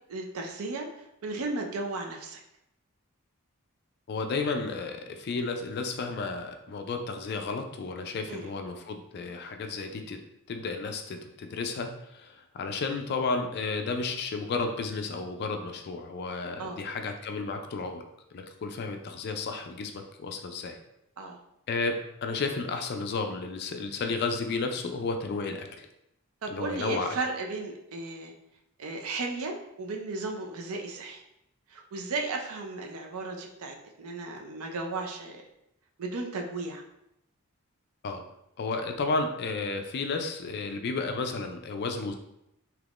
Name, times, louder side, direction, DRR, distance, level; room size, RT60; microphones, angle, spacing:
voice 1, 0.1-2.4 8.3-8.5 16.6-16.8 21.2-21.4 26.4-28.3 28.8-31.2 31.7-35.4 36.0-36.8, right 3 dB, 70° right, 2 dB, 0.5 m, -35 dB
voice 2, 4.1-10.2 10.5-18.0 18.3-20.8 21.7-25.9 26.5-27.2 38.0-38.2 38.6-42.1, left 3 dB, 45° left, 5 dB, 0.3 m, -32 dB
3.5 x 2.9 x 2.4 m, 0.82 s
head